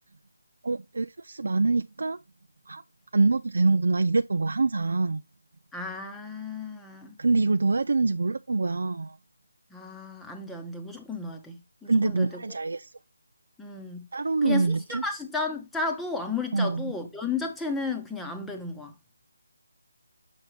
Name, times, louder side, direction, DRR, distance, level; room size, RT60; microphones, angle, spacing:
voice 1, 0.6-2.2 2.7-2.8 3.1-5.2 7.2-9.2 11.9-12.9 14.1-15.0 16.5-16.9, right 3 dB, 65° right, 0.4 m, -25 dB
voice 2, 5.7-7.2 9.7-12.3 13.6-14.1 14.4-18.9, left 4 dB, 5° left, 0.9 m, -33 dB
6.3 x 5.5 x 3.2 m
figure-of-eight pair, 160°, 0 cm